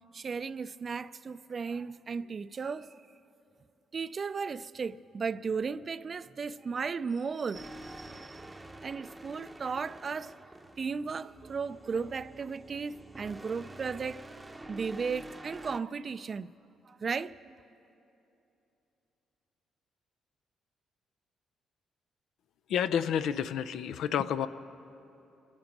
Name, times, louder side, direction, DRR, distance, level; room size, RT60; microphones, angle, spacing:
voice 1, 0.1-2.9 3.9-8.4 8.8-10.3 10.8-14.3 14.7-16.5 16.9-17.6, right 5 dB, 40° right, 0.4 m, -35 dB
sound 1, 7.5-15.8, right 1 dB, 15° right, 0.7 m, -48 dB
voice 2, 22.7-24.5, left 8 dB, 75° left, 0.4 m, -29 dB
25.5 x 8.9 x 5.9 m
cardioid pair, 90°, 0 cm